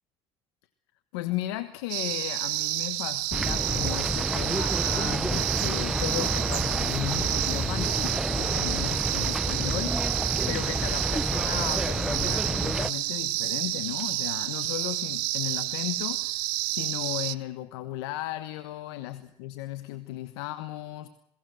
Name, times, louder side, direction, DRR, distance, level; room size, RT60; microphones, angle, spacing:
voice 1, 1.1-21.1, left 15 dB, 90° left, 11 dB, 1.3 m, -35 dB
sound 1, 1.9-17.3, right 20 dB, 85° right, 0.9 m, -30 dB
sound 2, 3.3-12.9, right 1 dB, 5° right, 0.9 m, -29 dB
22.0 x 18.0 x 7.8 m, 0.78 s
supercardioid pair, 75°, 13 cm